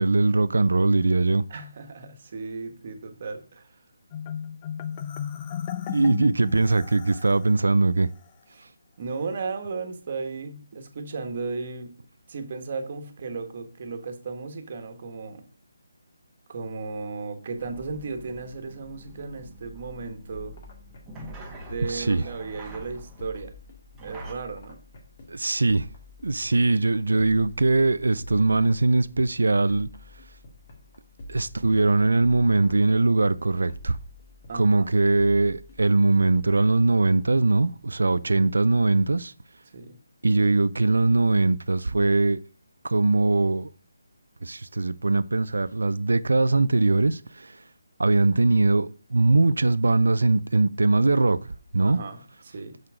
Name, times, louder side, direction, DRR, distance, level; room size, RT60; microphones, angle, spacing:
voice 1, 0.0-1.4 5.9-8.1 21.9-22.2 25.3-25.9 26.2-29.9 31.3-34.0 34.5-39.3 40.2-42.4 42.8-43.7 44.4-47.5 48.0-51.4 51.7-52.0, right 3 dB, 85° right, 0.5 m, -21 dB
voice 2, 1.5-3.8 8.5-8.7 9.0-11.9 12.3-15.4 16.5-20.5 21.5-23.5 24.0-24.8 34.5-34.9 39.7-40.0 51.8-52.8, right 4 dB, 40° right, 1.4 m, -35 dB
Marimba xylophone, 4.1-7.5, left 9 dB, 25° left, 0.5 m, -35 dB
sound 1, 17.6-24.3, right 2 dB, 10° right, 1.2 m, -45 dB
sound 2, 20.3-37.9, left 2 dB, 40° left, 2.0 m, -48 dB
6.5 x 6.0 x 4.9 m
hypercardioid pair, 165°, 0 cm